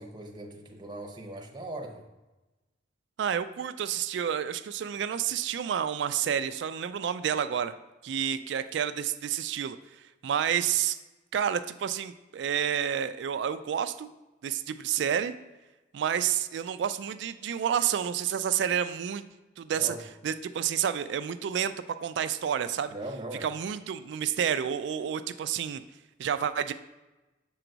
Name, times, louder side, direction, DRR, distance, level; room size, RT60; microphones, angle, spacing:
voice 1, 0.0-2.1 19.7-20.0 22.9-23.5, right 1 dB, 25° right, 2 dB, 0.8 m, -39 dB
voice 2, 3.2-7.7 8.0-9.8 10.2-11.0 11.3-14.1 14.4-15.3 15.9-19.2 19.6-19.9 20.2-21.7 22.0-22.9 23.4-25.8 26.2-26.7, right 8 dB, 65° right, 11 dB, 0.3 m, -29 dB
6.9 x 3.9 x 4.5 m, 1.1 s
head